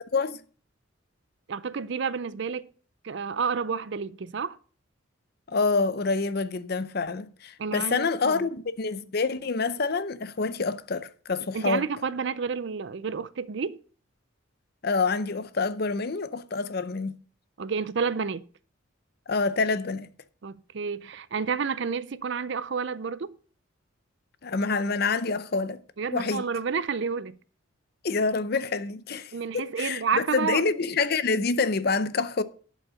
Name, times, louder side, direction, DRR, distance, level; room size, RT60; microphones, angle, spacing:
voice 1, 1.5-2.7 3.0-4.6 7.6-8.5 11.5-13.8 17.6-18.4 20.4-23.4 26.0-27.4 29.3-30.6, right 5 dB, 60° right, 0.5 m, -30 dB
voice 2, 5.5-11.9 14.8-17.1 19.3-20.1 24.4-25.8 26.1-26.4 28.0-32.4, left 4 dB, 50° left, 0.6 m, -27 dB
11.5 x 5.3 x 6.3 m
head